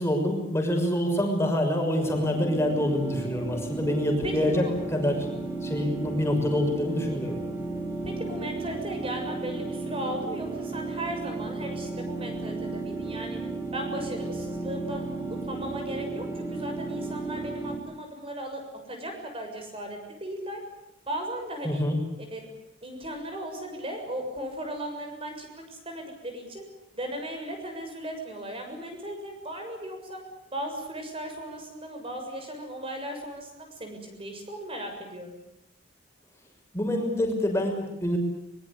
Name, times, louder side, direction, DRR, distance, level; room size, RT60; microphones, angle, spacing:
voice 1, 0.0-4.6 4.9-5.3 5.6-7.3 21.6-22.0 36.7-38.2, left 1 dB, 15° left, 2 dB, 6.2 m, -26 dB
sound 1, 2.0-17.8, right 3 dB, 15° right, 4.6 m, -34 dB
voice 2, 4.2-4.7 8.0-13.4 13.7-15.1 15.4-18.6 18.9-20.6 21.1-21.8 22.3-22.5 22.8-26.6 26.9-30.2 30.5-35.3, right 1 dB, 30° right, 4 dB, 7.0 m, -36 dB
24.0 x 22.0 x 8.4 m, 0.86 s
head